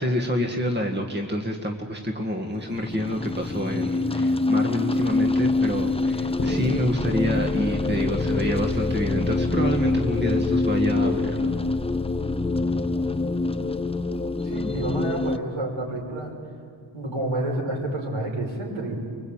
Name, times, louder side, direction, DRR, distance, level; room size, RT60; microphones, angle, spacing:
voice 1, 0.0-11.5, equal, 20° right, 2 dB, 1.9 m, -27 dB
sound 1, 2.6-15.4, left 3 dB, 10° left, 0.7 m, -25 dB
sound 2, 6.4-12.7, left 2 dB, 30° left, 1.7 m, -31 dB
voice 2, 14.4-16.4 16.9-19.0, right 1 dB, 70° right, -1 dB, 6.0 m, -29 dB
25.0 x 23.0 x 9.0 m, 2.2 s
wide cardioid pair, 90°, 49 cm